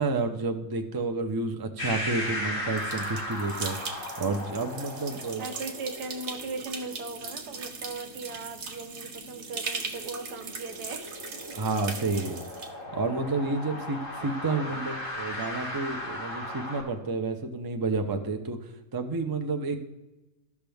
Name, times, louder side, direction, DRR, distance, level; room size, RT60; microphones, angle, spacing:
voice 1, 0.0-5.4 11.5-12.4 12.9-18.6 18.9-19.8, right 3 dB, 30° right, 5 dB, 0.3 m, -30 dB
sound 1, 1.8-16.8, left 1 dB, 50° left, 2.8 m, -38 dB
sound 2, 2.8-12.7, right 4 dB, 50° right, 1.2 m, -39 dB
voice 2, 5.4-11.1 11.5-11.6 13.7-13.8 14.2-14.9, right 3 dB, 85° right, 8 dB, 1.5 m, -39 dB
14.5 x 5.9 x 3.5 m, 1.1 s
omnidirectional pair, 1.7 m